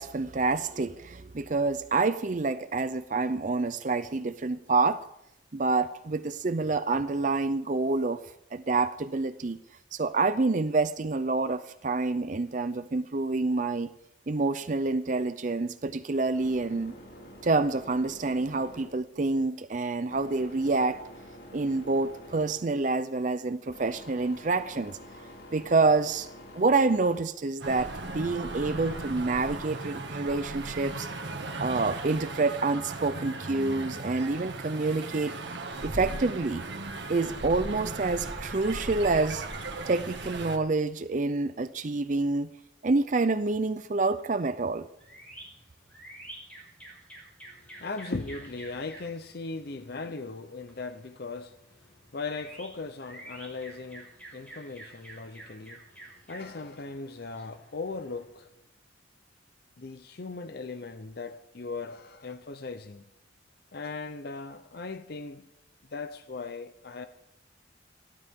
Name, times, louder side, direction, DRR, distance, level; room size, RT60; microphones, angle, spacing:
voice 1, 0.0-5.0 5.5-8.2 8.5-9.6 9.9-13.9 14.3-16.9 17.4-21.0 21.5-25.0 25.5-26.3 26.5-31.1 31.6-35.3 35.8-36.6 37.1-39.4 39.9-42.5 42.8-44.9, right 3 dB, 40° right, 0.5 m, -27 dB
sound 1, 15.7-29.1, equal, 70° left, 5.2 m, -49 dB
sound 2, 27.6-40.6, right 2 dB, 65° right, 2.0 m, -37 dB
sound 3, 45.0-58.2, right 1 dB, 5° left, 7.1 m, -50 dB
voice 2, 47.7-55.8 56.3-58.5 59.8-63.0 63.7-65.5 65.9-67.1, left 3 dB, 55° left, 0.7 m, -38 dB
28.0 x 12.5 x 3.7 m
head